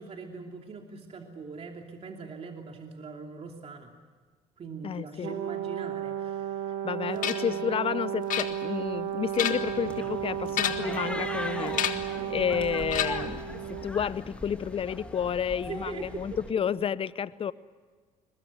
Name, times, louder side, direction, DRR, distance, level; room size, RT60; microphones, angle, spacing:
voice 1, 0.0-3.9 4.6-6.8 7.1-7.7 12.1-12.4 15.7-16.4, right 4 dB, 45° right, 3 dB, 2.8 m, -42 dB
voice 2, 4.8-5.4 6.8-11.8 12.3-17.5, left 8 dB, 40° left, 18 dB, 0.8 m, -31 dB
Brass instrument, 5.2-13.9, right 10 dB, 65° right, 2.7 m, -33 dB
sound 1, 7.2-7.6 8.3-8.9 9.2-9.8 10.5-11.0 11.7-12.2 12.9-13.4, left 11 dB, 60° left, 1.7 m, -31 dB
sound 2, 9.5-16.5, left 1 dB, 10° left, 3.1 m, -40 dB
22.5 x 21.5 x 9.6 m, 1.5 s
hypercardioid pair, 70°, 15 cm